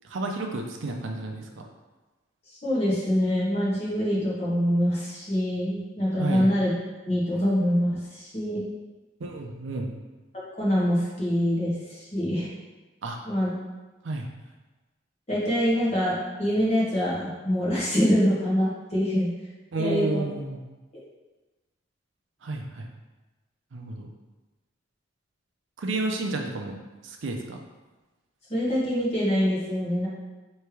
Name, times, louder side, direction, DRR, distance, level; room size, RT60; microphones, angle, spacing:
voice 1, 0.0-1.5 6.2-6.5 9.2-9.9 13.0-13.2 14.0-14.3 19.7-20.6 22.4-22.9 23.7-24.1 25.8-26.8 27.0-27.6, right 2 dB, 70° right, 2 dB, 0.5 m, -31 dB
voice 2, 2.5-6.7 7.0-8.7 10.6-12.5 13.2-13.5 15.3-19.3 19.8-20.0 28.5-30.1, equal, 30° left, -7 dB, 1.3 m, -25 dB
3.3 x 3.3 x 4.6 m, 1.2 s
head